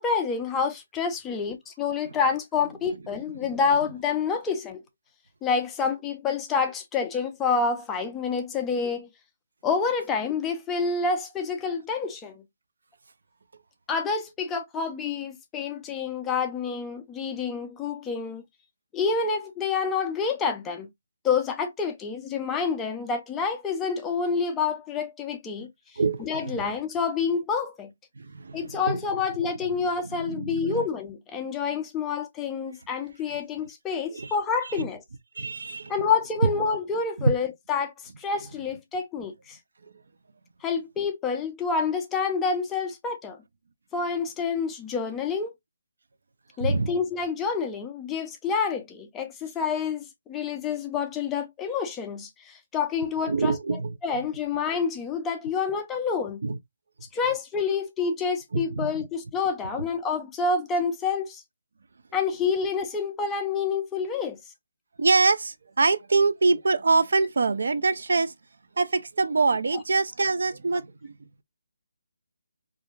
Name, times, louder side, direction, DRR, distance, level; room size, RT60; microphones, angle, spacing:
voice 1, 0.0-4.8 5.4-9.1 9.6-12.4 13.9-18.4 18.9-20.9 21.2-25.7 26.2-27.9 28.5-35.0 35.9-37.9 38.2-39.6 40.6-43.4 43.9-45.5 46.6-56.4 57.1-61.4 62.1-64.4, left 5 dB, 10° left, 0.3 m, -28 dB
voice 2, 26.0-26.5 28.2-29.0 30.1-30.8 34.1-34.3 34.8-34.9 35.4-35.9 37.2-37.4 46.6-46.9 53.3-53.9 56.4-56.6 58.5-58.9 65.0-68.3 68.8-71.1, right 3 dB, 70° right, 0.3 m, -24 dB
2.4 x 2.1 x 3.0 m
hypercardioid pair, 165°, 0 cm